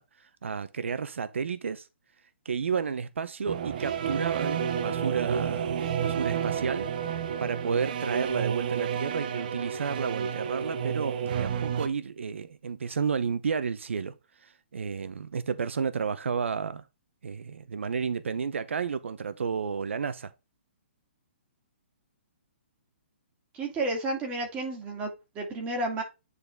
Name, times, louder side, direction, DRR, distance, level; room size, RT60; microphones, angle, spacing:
voice 1, 0.0-1.9 2.4-6.9 7.4-14.1 14.4-16.8 17.2-20.3, right 6 dB, 85° right, 0.7 m, -31 dB
sound 1, 3.5-11.9, right 8 dB, 45° right, 0.9 m, -30 dB
voice 2, 23.5-26.0, right 2 dB, 20° right, 2.4 m, -31 dB
9.5 x 4.0 x 3.5 m
hypercardioid pair, 160°, 6 cm